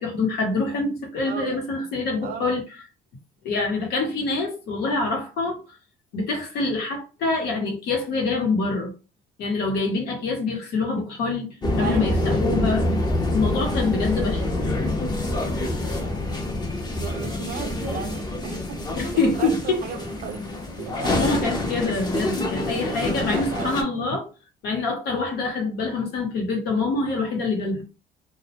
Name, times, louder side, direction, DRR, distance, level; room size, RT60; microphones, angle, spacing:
voice 1, 0.0-2.6 3.4-5.6 6.1-8.9 9.4-12.8 13.3-14.6 18.9-19.8 21.1-24.3 24.6-27.8, left 3 dB, 80° left, 0.9 m, -25 dB
voice 2, 1.2-1.9 2.2-2.5 11.8-12.5 16.9-18.9 19.1-20.4 20.8-21.3 21.8-22.0 22.9-24.0, right 7 dB, 60° right, 0.5 m, -36 dB
sound 1, 11.6-23.8, left 1 dB, 25° left, 0.7 m, -26 dB
2.3 x 2.1 x 2.8 m
cardioid pair, 110°, 17 cm